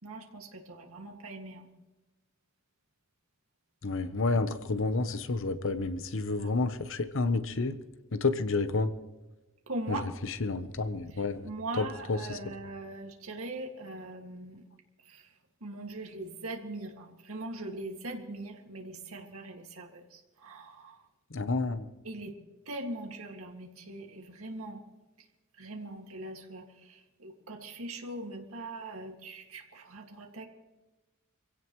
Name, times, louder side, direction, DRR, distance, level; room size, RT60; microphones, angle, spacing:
voice 1, 0.0-1.7 6.2-6.5 9.7-10.1 11.1-14.6 15.0-15.3 15.6-21.0 22.0-22.3 22.7-24.8 25.2-25.3 25.5-30.4, right 2 dB, 90° right, 2 dB, 2.1 m, -41 dB
voice 2, 3.8-7.8 8.1-8.9 9.9-10.0 10.4-11.5 11.8-12.4 21.3-21.9, left 3 dB, 65° left, 11 dB, 0.9 m, -30 dB
25.5 x 16.5 x 3.1 m, 1.1 s
head